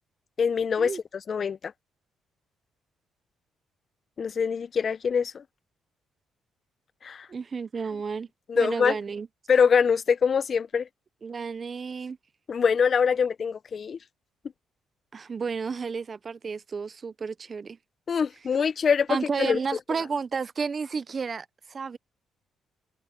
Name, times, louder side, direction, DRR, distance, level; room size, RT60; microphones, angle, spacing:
voice 1, 0.4-0.9 1.3-1.7 4.2-5.4 7.0-7.3 8.5-9.0 9.5-10.9 12.5-14.0 18.1-19.1 19.4-19.6, left 6 dB, 45° left, 0.6 m, -24 dB
voice 2, 7.3-8.3 8.5-9.3 11.2-12.2 15.1-17.8 19.1-22.0, right 5 dB, 40° right, 0.6 m, -32 dB
cardioid pair, 90°, 0 cm